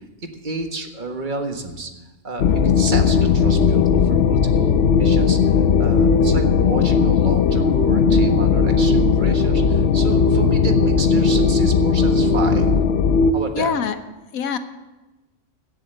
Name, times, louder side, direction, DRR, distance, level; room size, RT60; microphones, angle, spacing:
voice 1, 0.2-1.9 2.2-12.7 13.3-13.7, right 3 dB, 35° right, 5 dB, 1.6 m, -30 dB
sound 1, 2.4-13.3, left 5 dB, 55° left, 0.8 m, -17 dB
voice 2, 2.5-2.8 13.5-13.9 14.3-14.6, left 6 dB, 80° left, 10 dB, 1.4 m, -24 dB
15.5 x 7.7 x 8.0 m, 1.1 s
omnidirectional pair, 1.5 m